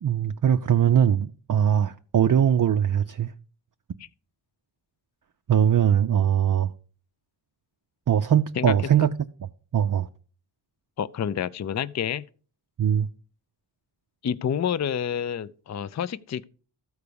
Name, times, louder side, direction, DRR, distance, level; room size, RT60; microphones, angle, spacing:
voice 1, 0.0-3.3 5.5-6.7 8.1-9.1 9.7-10.1 12.8-13.1, right 9 dB, 45° right, 0.5 m, -21 dB
voice 2, 11.0-12.2 14.2-16.4, left 8 dB, 35° left, 0.4 m, -28 dB
13.5 x 4.7 x 6.9 m
wide cardioid pair, 120°, 49 cm